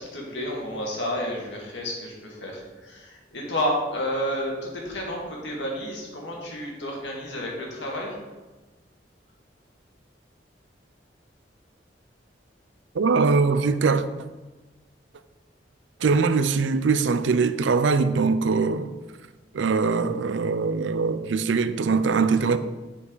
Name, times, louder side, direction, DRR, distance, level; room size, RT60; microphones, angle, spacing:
voice 1, 0.0-8.2, equal, 75° left, 1.9 m, -31 dB
voice 2, 12.9-14.0 16.0-18.9 19.5-22.6, right 4 dB, 80° right, 0.5 m, -22 dB
7.5 x 5.8 x 3.9 m
head